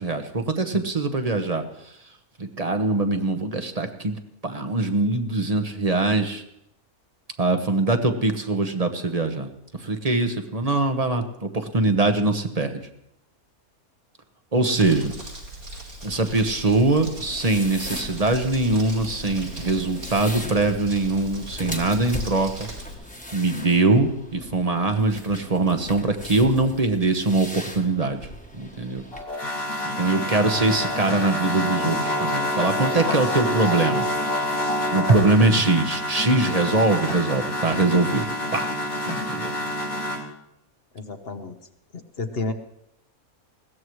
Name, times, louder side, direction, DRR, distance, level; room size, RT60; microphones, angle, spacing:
voice 1, 0.0-1.6 2.4-6.4 7.4-9.5 9.8-12.8 14.5-15.1 16.0-22.5 23.3-28.2 28.5-29.0 29.8-34.1 34.9-38.7 39.1-39.5, right 2 dB, 30° right, 7 dB, 1.1 m, -22 dB
Crumpling crinkling, 14.8-22.9, right 1 dB, 75° right, 4.9 m, -39 dB
sound 1, 17.0-29.2, left 1 dB, 5° left, 1.3 m, -39 dB
sound 2, 29.1-40.2, left 1 dB, 70° left, 3.0 m, -27 dB
voice 2, 40.9-41.5 41.9-42.5, left 3 dB, 45° left, 8 dB, 1.1 m, -31 dB
21.0 x 17.0 x 3.2 m, 0.79 s
omnidirectional pair, 1.5 m